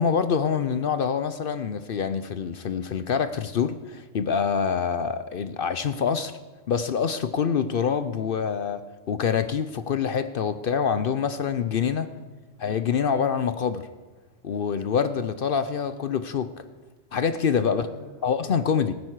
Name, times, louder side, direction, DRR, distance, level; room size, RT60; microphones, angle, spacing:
voice 1, 0.0-6.3 6.7-12.1 12.6-13.9 14.4-16.6 17.1-17.8 18.2-18.9, left 6 dB, 60° left, 12 dB, 0.7 m, -26 dB
voice 2, 12.0-12.6 17.6-19.0, right 1 dB, 50° right, -6 dB, 6.2 m, -49 dB
18.5 x 9.5 x 4.7 m, 1.3 s
omnidirectional pair, 1.3 m